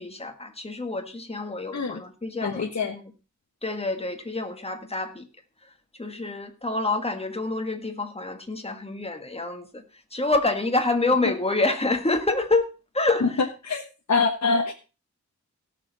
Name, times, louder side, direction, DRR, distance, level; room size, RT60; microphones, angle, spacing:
voice 1, 0.0-3.0 3.6-5.3 5.6-5.7 6.0-9.8 10.1-12.7 12.9-13.5, left 2 dB, 20° left, 1.7 m, -27 dB
voice 2, 2.4-2.9 13.2-13.3 13.7-13.8 14.1-14.7, left 4 dB, 65° left, 1.3 m, -24 dB
17.5 x 6.8 x 4.1 m
wide cardioid pair, 100°, 30 cm